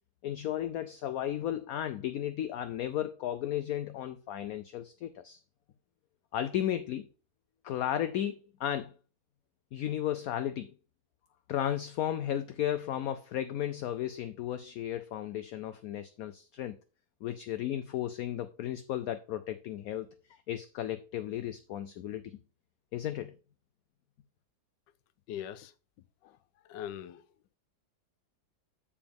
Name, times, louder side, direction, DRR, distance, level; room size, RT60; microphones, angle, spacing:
voice 1, 0.2-5.4 6.3-7.1 7.6-8.9 9.7-10.7 11.5-16.7 17.2-22.4 22.9-23.3, left 11 dB, 70° left, 0.8 m, -34 dB
voice 2, 25.3-25.7 26.2-26.4 26.6-27.2, left 10 dB, 90° left, 1.3 m, -41 dB
7.1 x 6.9 x 3.5 m
omnidirectional pair, 1.9 m